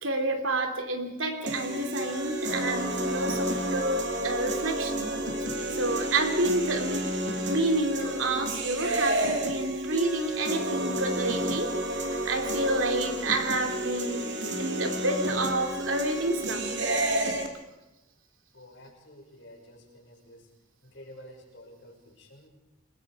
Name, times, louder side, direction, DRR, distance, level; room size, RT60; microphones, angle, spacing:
voice 1, 0.0-5.2 5.7-7.1 7.5-14.3 14.6-16.8, right 2 dB, 85° right, 5 dB, 3.0 m, -29 dB
sound 1, 1.5-17.5, right 1 dB, 60° right, 2.8 m, -30 dB
voice 2, 18.5-20.5 20.8-22.5, equal, 65° left, 0 dB, 6.0 m, -50 dB
28.5 x 20.5 x 4.9 m, 0.97 s
head